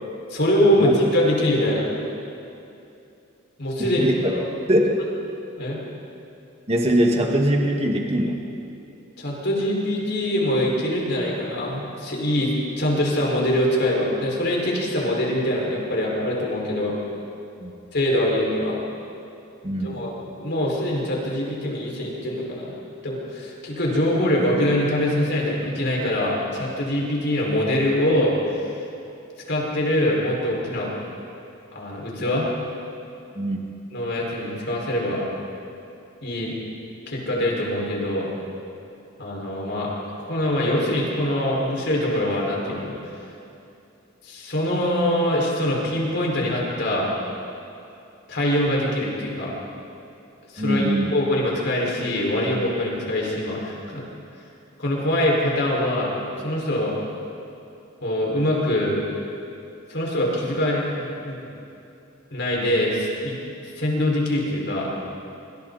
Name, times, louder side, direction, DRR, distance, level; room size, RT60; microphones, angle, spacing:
voice 1, 0.3-1.9 3.6-4.4 5.6-5.8 9.2-17.0 17.9-18.8 19.8-22.7 23.0-28.3 29.5-30.9 31.7-32.5 33.9-35.2 36.2-36.5 37.1-38.3 39.2-39.9 40.2-42.9 44.2-47.1 48.3-49.5 50.5-54.0 54.8-56.1 56.4-57.0 58.0-59.0 59.9-61.4 62.3-63.4 63.8-64.9, left 1 dB, 60° left, -3 dB, 5.6 m, -23 dB
voice 2, 3.8-4.3 4.7-5.0 6.7-8.4 17.6-17.7 19.6-20.0 33.4-33.6 50.6-51.1, right 1 dB, 30° right, 0 dB, 2.0 m, -22 dB
26.5 x 25.5 x 4.3 m, 2.7 s
head